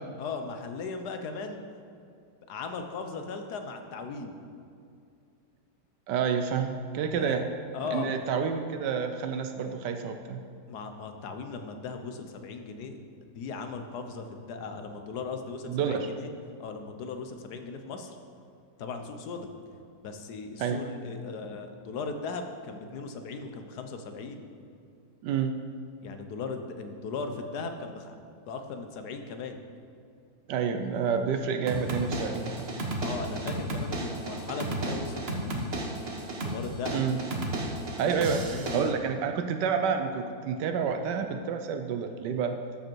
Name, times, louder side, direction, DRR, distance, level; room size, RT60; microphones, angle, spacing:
voice 1, 0.2-1.6 2.5-4.4 7.1-7.4 7.7-8.1 10.7-16.3 16.6-18.2 18.8-19.5 20.0-24.4 26.0-28.2 28.5-29.6 33.0-35.8 36.4-37.0 38.0-39.0, left 4 dB, 70° left, 6 dB, 1.4 m, -38 dB
voice 2, 6.1-7.5 7.9-10.4 15.7-16.1 20.6-20.8 25.2-25.5 30.5-32.7 36.9-37.2 38.0-42.6, right 6 dB, 85° right, 6 dB, 1.3 m, -29 dB
sound 1, 31.7-38.9, right 1 dB, 40° right, 1.1 m, -33 dB
12.5 x 7.6 x 4.6 m, 2.4 s
omnidirectional pair, 1.8 m